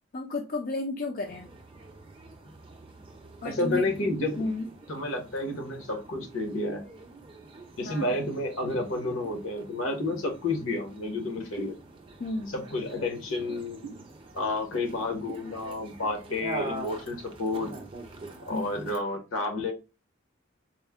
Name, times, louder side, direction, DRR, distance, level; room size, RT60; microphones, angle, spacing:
voice 1, 0.1-1.5 3.4-3.9 4.4-4.7 7.8-8.1 12.2-12.6 18.5-18.7, left 2 dB, 40° left, 3 dB, 0.4 m, -32 dB
sound 1, 1.2-19.0, right 2 dB, 25° right, 0.5 m, -45 dB
voice 2, 3.4-4.4 4.9-6.8 7.8-11.7 12.5-13.8 14.3-17.7 18.5-19.7, left 2 dB, 70° left, 3 dB, 1.1 m, -30 dB
4.2 x 2.1 x 3.5 m, 0.29 s
head